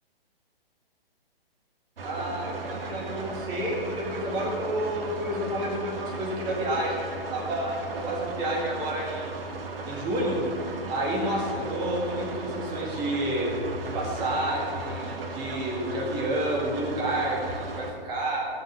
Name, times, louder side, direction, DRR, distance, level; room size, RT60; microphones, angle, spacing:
voice 1, 2.0-9.4 9.8-10.4 10.9-13.5 13.8-18.5, right 1 dB, 15° right, -3 dB, 1.9 m, -30 dB
sound 1, 2.0-17.9, right 3 dB, 70° right, 1.8 m, -36 dB
17.5 x 6.6 x 6.2 m, 2.5 s
hypercardioid pair, 160°, 30 cm